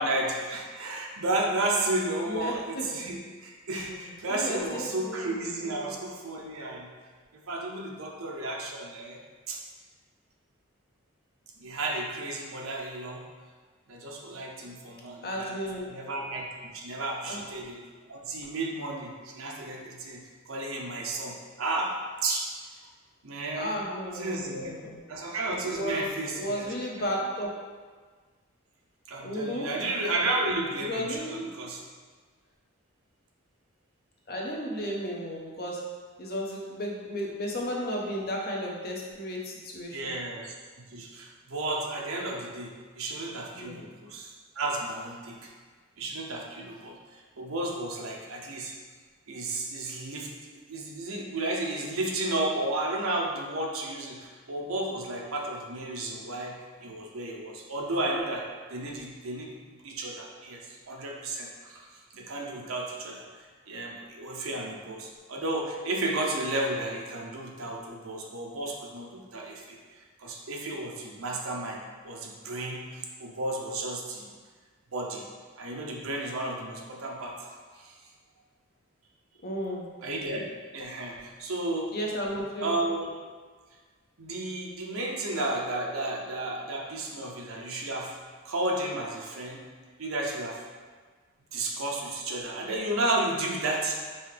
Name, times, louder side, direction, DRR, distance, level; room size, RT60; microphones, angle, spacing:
voice 1, 0.0-6.9 7.5-9.2 9.5-9.6 11.6-13.2 13.9-15.5 15.9-16.5 16.7-17.8 18.1-21.9 22.2-22.8 23.2-23.8 24.1-24.7 25.1-27.0 29.1-31.8 39.9-44.3 44.6-45.5 46.0-48.7 49.3-59.5 59.8-61.9 62.1-74.3 74.9-75.2 75.6-77.3 77.7-78.0 80.0-81.9 82.6-83.1 84.2-88.2 88.4-89.6 90.0-90.6 91.5-93.9, right 2 dB, 85° right, -1 dB, 0.7 m, -33 dB
voice 2, 2.2-3.0 3.9-4.0 4.3-6.0 15.2-15.9 17.3-17.4 23.5-25.0 25.7-27.5 29.2-29.7 30.9-31.5 34.3-35.8 36.2-40.1 43.6-43.8 79.4-79.9 81.9-82.7, equal, 50° left, -2 dB, 0.8 m, -34 dB
5.3 x 2.8 x 3.3 m, 1.5 s
head